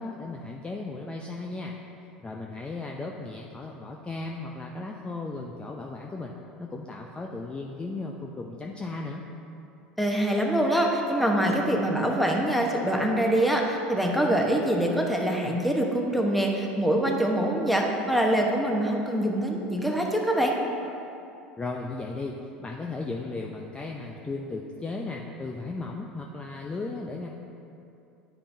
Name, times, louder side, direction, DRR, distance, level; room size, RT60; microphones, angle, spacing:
voice 1, 0.0-1.7 2.2-6.3 6.6-9.2 21.6-27.3, left 3 dB, 20° left, 0 dB, 0.5 m, -36 dB
voice 2, 10.0-20.5, right 1 dB, ahead, 0 dB, 1.0 m, -24 dB
9.8 x 5.6 x 2.7 m, 2.7 s
hypercardioid pair, 80°, 5 cm